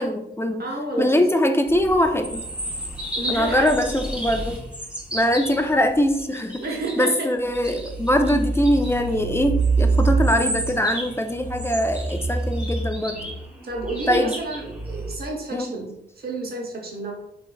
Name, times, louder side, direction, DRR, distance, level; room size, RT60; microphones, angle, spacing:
voice 1, 0.0-0.6 1.0-2.4 3.3-4.6 5.1-6.6 7.0-13.3 14.1-14.4 15.5-15.8, equal, 15° left, 6 dB, 0.4 m, -22 dB
voice 2, 0.6-1.2 3.2-3.7 6.6-7.3 13.6-17.1, right 2 dB, 55° right, 0 dB, 0.9 m, -30 dB
sound 1, 1.7-7.1 7.5-15.2, right 3 dB, 5° right, 0.8 m, -28 dB
3.4 x 3.1 x 2.2 m, 0.80 s
cardioid pair, 50°, 20 cm